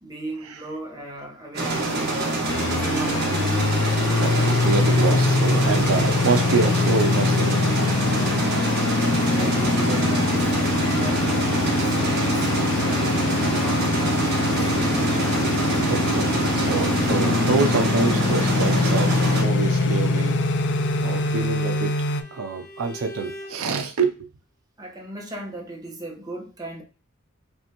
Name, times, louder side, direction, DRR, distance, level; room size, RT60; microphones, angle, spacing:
voice 1, 0.0-2.5 2.8-3.6 9.3-12.5 12.9-15.2 24.8-26.8, right 1 dB, 20° right, 1.2 m, -36 dB
sound 1, 1.5-19.4, right 2 dB, 50° right, 1.4 m, -26 dB
sound 2, 2.5-22.2, left 3 dB, 55° left, 0.5 m, -23 dB
voice 2, 4.1-7.6 14.6-14.7 15.8-20.4 21.0-21.9 22.3-24.3, right 4 dB, 75° right, 0.5 m, -26 dB
Bowed string instrument, 19.9-23.6, equal, 10° left, 1.1 m, -41 dB
5.4 x 2.6 x 2.9 m
head